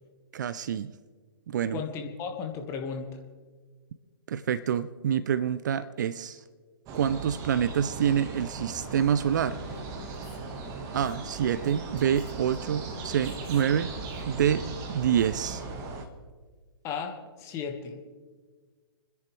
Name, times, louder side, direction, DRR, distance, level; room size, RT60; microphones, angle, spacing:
voice 1, 0.3-0.9 1.5-1.8 4.3-6.4 6.9-9.6 10.9-13.9 14.3-15.6, right 9 dB, 45° right, 15 dB, 0.5 m, -27 dB
voice 2, 1.7-3.1 16.8-17.1 17.4-18.0, left 6 dB, 20° left, 4 dB, 1.5 m, -34 dB
sound 1, 6.9-16.1, right 3 dB, 25° right, 1.4 m, -38 dB
Female speech woman speaking, 9.5-14.6, left 7 dB, 45° left, 3.9 m, -52 dB
30.0 x 10.5 x 3.2 m, 1.5 s
figure-of-eight pair, 125°, 14 cm